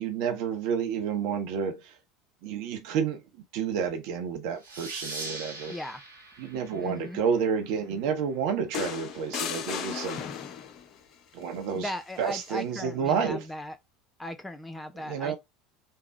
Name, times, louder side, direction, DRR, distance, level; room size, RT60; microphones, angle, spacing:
voice 1, 0.0-1.9 2.4-5.8 6.4-10.2 11.3-11.9 12.2-13.4 14.9-15.4, right 7 dB, 55° right, 0.9 m, -30 dB
sound 1, 4.6-7.9, right 2 dB, 80° right, 1.5 m, -41 dB
voice 2, 5.7-6.0 6.8-7.2 11.7-13.8 14.2-15.4, left 1 dB, 10° left, 0.6 m, -37 dB
sound 2, 8.7-10.9 12.3-12.5, left 8 dB, 45° left, 0.6 m, -35 dB
3.7 x 2.3 x 4.5 m
figure-of-eight pair, 70°, 0 cm